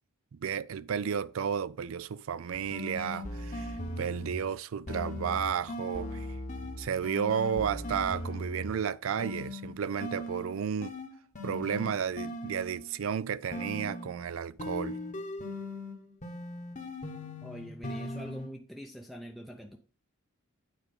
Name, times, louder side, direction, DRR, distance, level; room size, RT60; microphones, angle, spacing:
voice 1, 0.3-6.3 6.8-10.9 11.4-15.0, right 7 dB, 75° right, 0.4 m, -32 dB
sound 1, 2.5-4.5 4.9-8.8 9.2-12.9 13.5-18.5, left 1 dB, 35° left, 1.1 m, -39 dB
voice 2, 17.4-19.8, equal, ahead, 0.6 m, -44 dB
9.0 x 4.7 x 5.1 m
head